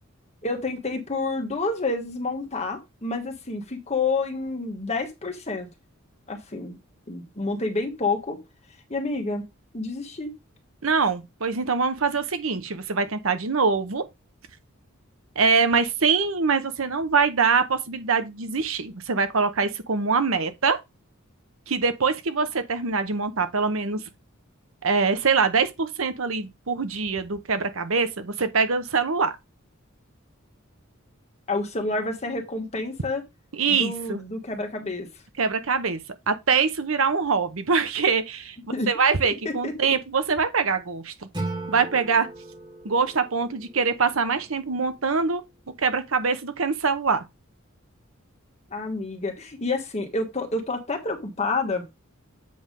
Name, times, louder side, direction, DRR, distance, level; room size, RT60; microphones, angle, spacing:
voice 1, 0.4-5.7 6.3-6.8 7.1-8.4 8.9-9.4 9.7-10.3 31.5-33.2 33.7-35.1 38.7-38.9 39.4-39.7 48.7-51.9, left 3 dB, 30° left, 1.4 m, -29 dB
voice 2, 10.8-14.0 15.3-20.8 21.7-24.0 24.8-29.4 33.5-34.2 35.4-36.0 36.3-38.6 38.9-41.1 41.7-42.3 42.8-45.4 45.8-47.2, right 5 dB, 70° right, 0.9 m, -24 dB
Acoustic guitar / Strum, 41.3-44.5, right 2 dB, 20° right, 1.9 m, -37 dB
7.9 x 3.3 x 5.2 m
head